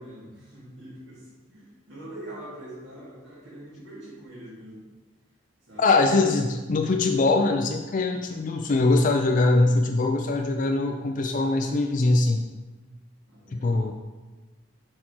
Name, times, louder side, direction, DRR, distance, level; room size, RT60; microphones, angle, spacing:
voice 1, 0.0-4.9 5.6-6.5 13.3-13.9, right 1 dB, 80° right, -7 dB, 2.2 m, -44 dB
voice 2, 5.8-12.4 13.5-13.9, left 2 dB, 45° left, 4 dB, 0.4 m, -22 dB
6.5 x 4.4 x 4.3 m, 1.2 s
head